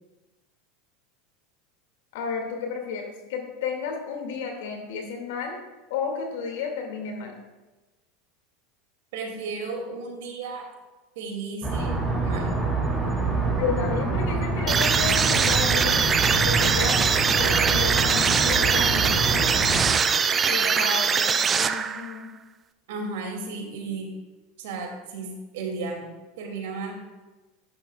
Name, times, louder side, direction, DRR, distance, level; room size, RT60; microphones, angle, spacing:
voice 1, 2.1-5.6 5.9-7.3 13.6-19.4 20.5-22.3, left 5 dB, 75° left, 2 dB, 2.2 m, -32 dB
voice 2, 9.1-10.6 11.2-12.6 19.0-19.8 22.9-24.1 24.6-26.1 26.4-27.0, right 3 dB, 75° right, 1 dB, 2.4 m, -34 dB
sound 1, 11.6-19.9, right 2 dB, 5° right, 2.7 m, -26 dB
sound 2, 14.7-22.2, right 6 dB, 30° right, 0.5 m, -22 dB
12.5 x 10.0 x 2.3 m, 1.2 s
hypercardioid pair, 100°, 0 cm